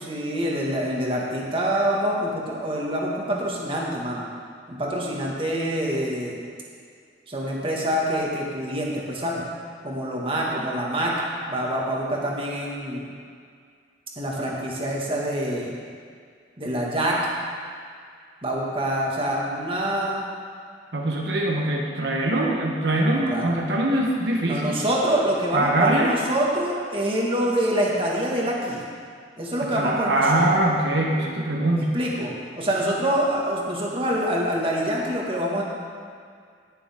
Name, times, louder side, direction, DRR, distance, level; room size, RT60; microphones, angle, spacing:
voice 1, 0.0-4.2 4.7-6.4 7.3-9.4 9.8-11.1 11.5-13.0 14.2-15.8 16.6-17.2 18.4-20.3 23.1-23.5 24.5-28.8 29.4-30.5 31.8-35.6, right 1 dB, 30° right, -4 dB, 1.9 m, -26 dB
voice 2, 20.9-24.8 25.5-26.3 29.6-31.9, right 1 dB, 75° right, -1 dB, 1.1 m, -23 dB
19.0 x 6.9 x 3.7 m, 2.2 s
head